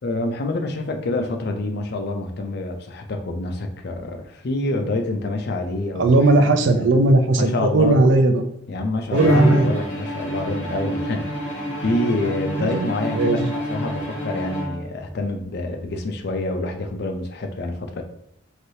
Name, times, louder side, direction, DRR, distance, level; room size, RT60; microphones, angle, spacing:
voice 1, 0.0-6.1 6.5-7.0 7.4-8.0 8.7-13.4 13.7-18.0, left 2 dB, 50° left, 4 dB, 0.4 m, -27 dB
voice 2, 5.9-8.4 9.1-9.7 11.8-12.3 12.6-13.5, right 2 dB, 60° right, 6 dB, 0.4 m, -18 dB
Bowed string instrument, 9.1-15.1, right 1 dB, 20° left, 1.4 m, -26 dB
3.2 x 2.6 x 2.7 m, 0.77 s
head